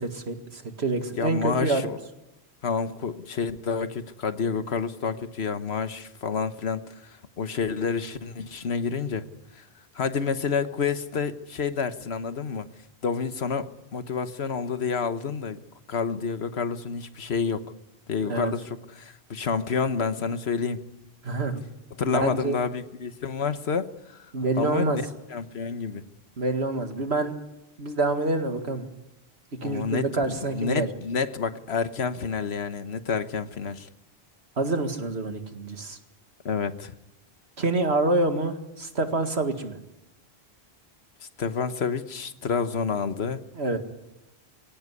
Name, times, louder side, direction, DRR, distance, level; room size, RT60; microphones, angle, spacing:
voice 1, 0.0-1.9 18.2-18.5 21.2-21.6 22.1-22.6 24.3-25.0 26.4-27.3 27.8-28.9 29.6-30.9 34.6-36.0 37.6-39.8 43.6-43.8, right 2 dB, 85° right, 6 dB, 2.3 m, -27 dB
voice 2, 1.2-2.0 2.6-9.2 9.5-9.6 9.9-12.7 13.0-15.6 15.9-17.6 18.1-20.8 22.0-24.2 24.6-25.0 25.3-26.0 29.6-33.9 36.4-36.9 41.4-43.4, left 5 dB, 80° left, 11 dB, 1.4 m, -29 dB
23.5 x 17.5 x 9.7 m, 0.95 s
omnidirectional pair, 1.1 m